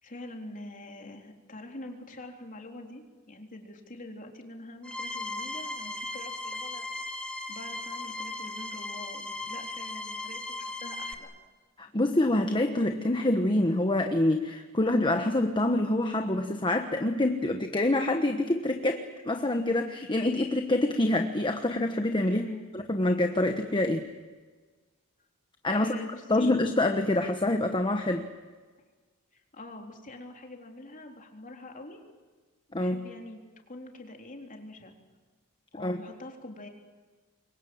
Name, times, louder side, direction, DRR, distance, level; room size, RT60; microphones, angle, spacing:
voice 1, 0.0-6.9 7.5-11.3 22.3-22.7 25.7-26.5 29.3-32.0 32.8-33.4 33.7-34.9 35.7-36.7, left 1 dB, 35° left, 2 dB, 3.8 m, -44 dB
sound 1, 4.8-11.1, left 2 dB, 5° left, 2.1 m, -37 dB
voice 2, 11.8-22.4 22.7-24.1 25.6-25.9 26.3-28.3 32.7-33.0 35.8-36.0, left 1 dB, 20° left, 5 dB, 1.2 m, -26 dB
27.5 x 23.5 x 8.0 m, 1.4 s
head